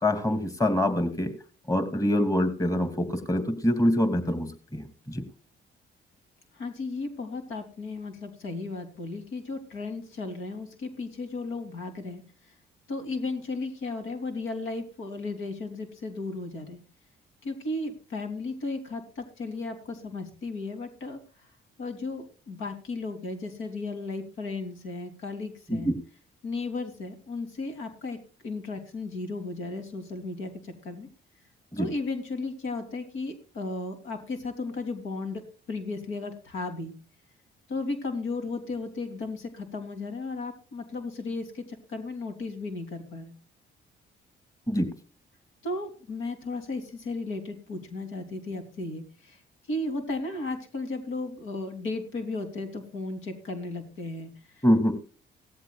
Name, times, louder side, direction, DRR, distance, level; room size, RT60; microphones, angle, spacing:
voice 1, 0.0-1.3 1.7-5.2 25.7-26.0 31.7-31.9 44.7-44.9 54.6-54.9, left 1 dB, 15° left, 11 dB, 2.6 m, -25 dB
voice 2, 6.5-12.2 12.9-16.8 17.4-21.2 21.8-25.9 26.4-28.2 28.4-31.1 31.7-35.4 35.7-36.9 37.7-43.3 45.6-49.4 49.7-54.3 54.6-54.7, left 3 dB, 85° left, 6 dB, 3.4 m, -35 dB
17.0 x 14.0 x 2.4 m, 0.36 s
cardioid pair, 90°, 20 cm